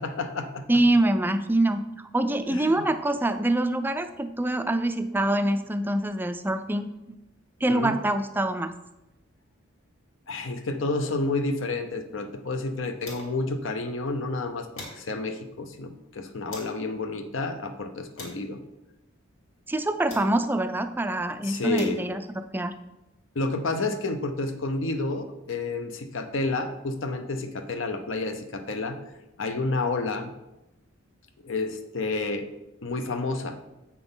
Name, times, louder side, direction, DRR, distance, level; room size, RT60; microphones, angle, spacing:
voice 1, 0.0-0.6 2.5-2.8 7.7-7.9 10.3-18.6 21.4-22.0 23.3-29.0 29.4-30.3 31.4-32.5 32.8-33.6, left 3 dB, 65° left, 8 dB, 0.8 m, -30 dB
voice 2, 0.7-6.9 7.6-8.7 19.7-22.7, right 1 dB, 10° right, 9 dB, 0.4 m, -25 dB
sound 1, 11.8-13.6 13.9-14.0 14.3-16.9 17.5-20.7 21.4-23.6, left 2 dB, 90° left, 2.4 m, -48 dB
7.9 x 6.0 x 3.8 m, 0.94 s
head